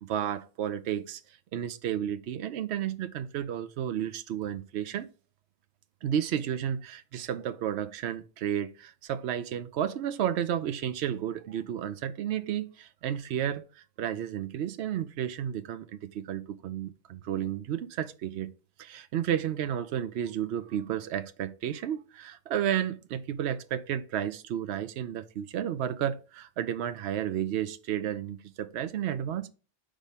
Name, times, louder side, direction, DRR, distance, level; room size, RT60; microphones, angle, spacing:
voice 1, 0.0-1.2 1.5-5.1 6.0-18.5 18.8-29.5, right 10 dB, 70° right, 0.9 m, -32 dB
5.1 x 3.5 x 5.4 m
omnidirectional pair, 1.2 m